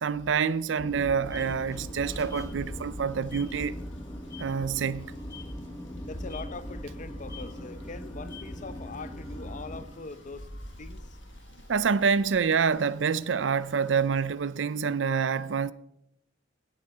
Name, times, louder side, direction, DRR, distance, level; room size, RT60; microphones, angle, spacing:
voice 1, 0.0-3.8 4.4-5.1 11.7-15.7, right 6 dB, 75° right, 0.5 m, -27 dB
sound 1, 0.8-9.9, left 1 dB, 15° left, 1.1 m, -40 dB
sound 2, 1.2-14.1, left 3 dB, 70° left, 1.5 m, -57 dB
sound 3, 1.8-12.7, equal, 20° right, 5.3 m, -49 dB
voice 2, 6.0-10.5 10.8-11.2 12.1-12.4 14.9-15.0, left 3 dB, 40° left, 0.8 m, -42 dB
16.5 x 7.4 x 5.6 m
head